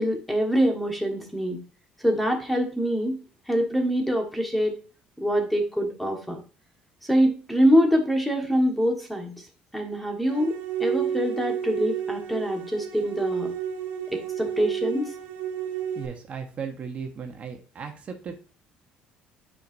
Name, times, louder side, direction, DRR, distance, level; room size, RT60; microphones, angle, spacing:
voice 1, 0.0-1.6 2.0-4.8 5.2-6.4 7.0-9.3 9.7-13.5 14.1-15.1, equal, ahead, 2 dB, 1.4 m, -24 dB
sound 1, 10.3-16.1, right 9 dB, 80° right, 1.4 m, -31 dB
voice 2, 15.9-18.4, right 6 dB, 40° right, 4 dB, 1.1 m, -36 dB
8.1 x 4.8 x 2.6 m, 0.36 s
cardioid pair, 115°, 3 cm